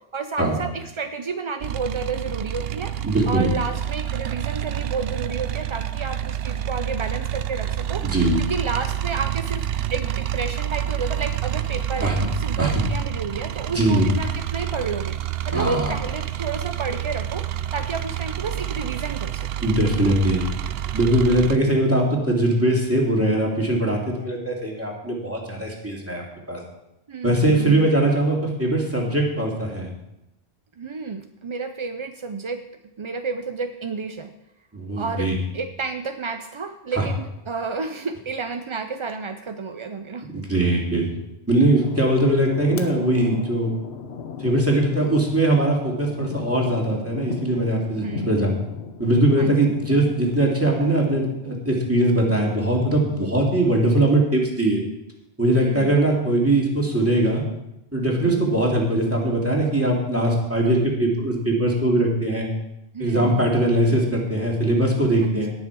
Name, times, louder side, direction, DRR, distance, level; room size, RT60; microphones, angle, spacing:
voice 1, 0.1-2.9 3.3-9.6 9.9-15.2 15.5-17.4 17.7-19.5 27.1-28.0 30.8-32.6 33.0-34.3 35.0-40.3 48.0-48.4 49.4-49.6 55.5-56.0 58.2-58.4 62.9-63.5 65.3-65.4, right 4 dB, 45° right, 7 dB, 0.4 m, -31 dB
sound 1, 1.6-21.6, right 11 dB, 70° right, 0.8 m, -28 dB
voice 2, 3.0-3.5 8.0-8.4 12.0-12.3 12.6-12.8 13.7-14.1 15.5-15.9 19.6-20.4 20.9-26.2 26.5-26.6 27.2-29.9 34.7-35.4 37.0-37.1 40.3-41.1 41.5-43.7 44.4-48.5 49.0-54.8 55.4-57.4 57.9-62.5 63.0-65.5, right 1 dB, 15° right, -2 dB, 2.4 m, -21 dB
sound 2, 41.8-51.6, left 6 dB, 80° left, 1.2 m, -37 dB
17.5 x 6.4 x 4.7 m, 0.87 s
omnidirectional pair, 1.1 m